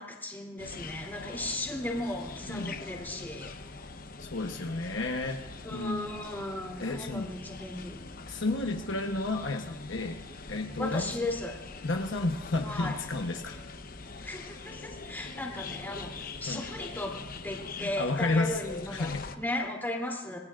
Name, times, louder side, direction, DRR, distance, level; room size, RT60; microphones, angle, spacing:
voice 1, 0.0-3.5 5.6-8.0 10.8-11.6 12.6-12.9 14.2-17.2 17.4-19.1 19.4-20.4, left 1 dB, 10° left, -1 dB, 3.1 m, -36 dB
sound 1, 0.6-19.4, left 3 dB, 45° left, 0.9 m, -43 dB
voice 2, 4.2-6.1 6.8-7.3 8.3-10.2 10.5-11.1 11.8-13.6 16.5-16.7 17.8-18.6 18.9-19.3, left 2 dB, 65° left, 3 dB, 1.1 m, -31 dB
27.0 x 19.5 x 2.5 m, 0.94 s
head